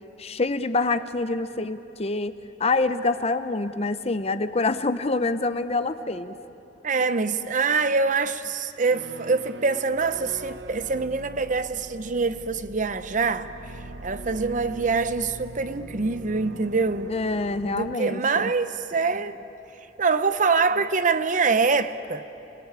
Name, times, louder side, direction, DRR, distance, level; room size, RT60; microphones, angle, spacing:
voice 1, 0.2-2.3 2.6-6.4 17.1-18.5, left 3 dB, 35° left, 0.8 m, -26 dB
voice 2, 6.8-13.5 14.0-17.1 17.6-19.4 20.0-22.2, right 4 dB, 45° right, 0.8 m, -24 dB
sound 1, 8.8-18.0, right 2 dB, 75° right, 0.8 m, -42 dB
28.5 x 21.0 x 8.9 m
head